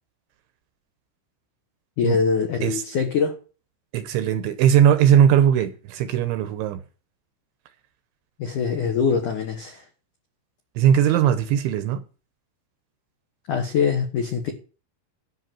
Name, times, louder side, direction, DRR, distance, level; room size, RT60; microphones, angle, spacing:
voice 1, 2.0-3.4 8.4-9.8 13.5-14.5, left 6 dB, 75° left, 1.8 m, -23 dB
voice 2, 3.9-6.8 10.8-12.0, right 9 dB, 80° right, 2.9 m, -19 dB
13.0 x 5.9 x 7.6 m
omnidirectional pair, 5.9 m